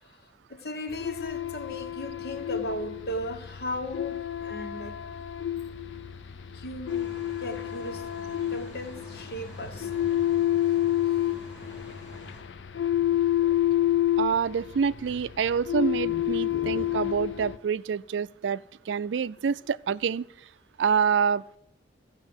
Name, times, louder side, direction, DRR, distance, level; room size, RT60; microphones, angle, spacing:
voice 1, 0.0-5.0 6.5-7.1 7.4-8.1 8.5-9.9 16.5-16.6, equal, 60° left, 1.1 m, -37 dB
sound 1, 0.9-17.6, left 12 dB, 85° left, 0.5 m, -29 dB
sound 2, 6.9-12.4, equal, 5° right, 5.3 m, -47 dB
voice 2, 14.2-18.6 18.9-20.3 20.8-21.4, right 6 dB, 85° right, 0.4 m, -26 dB
14.5 x 6.3 x 7.9 m
head